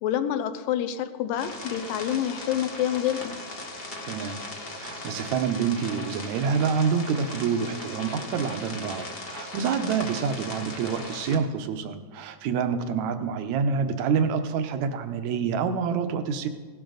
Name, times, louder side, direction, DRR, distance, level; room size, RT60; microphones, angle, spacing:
voice 1, 0.0-3.4, left 10 dB, 85° left, 10 dB, 2.5 m, -27 dB
sound 1, 1.4-11.4, left 2 dB, 50° left, 0.6 m, -38 dB
voice 2, 4.1-4.4 4.8-16.5, right 6 dB, 75° right, 8 dB, 1.9 m, -27 dB
17.0 x 12.0 x 3.9 m, 1.4 s
omnidirectional pair, 3.9 m